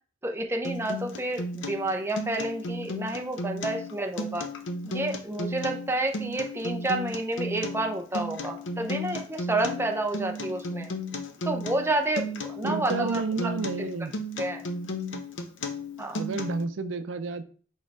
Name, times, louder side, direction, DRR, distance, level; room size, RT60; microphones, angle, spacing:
voice 1, 0.2-4.5 4.8-10.9 11.5-13.5 13.8-13.9 14.4-14.7 16.0-16.3, right 2 dB, 15° right, 3 dB, 0.6 m, -30 dB
Acoustic guitar, 0.6-16.6, left 1 dB, 80° left, 0.7 m, -34 dB
voice 2, 12.6-14.1 16.1-17.4, right 4 dB, 90° right, 11 dB, 0.5 m, -31 dB
4.7 x 4.3 x 4.6 m, 0.43 s
head